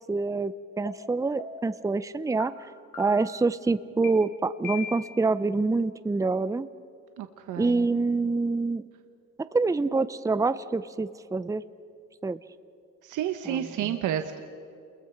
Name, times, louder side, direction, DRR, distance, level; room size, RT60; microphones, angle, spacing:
voice 1, 0.1-2.5 3.0-6.7 7.6-8.8 9.5-11.6 12.2-12.4 13.5-13.9, right 3 dB, 10° right, 14 dB, 0.6 m, -26 dB
sound 1, 0.8-0.9 1.4-1.8 2.4-2.5 2.9-3.4 4.0-4.1 4.6-5.2, left 6 dB, 85° left, 3.6 m, -39 dB
voice 2, 7.2-7.9 13.0-14.4, right 10 dB, 85° right, 7 dB, 1.1 m, -31 dB
28.5 x 21.5 x 5.9 m, 2.5 s
cardioid pair, 90°, 30 cm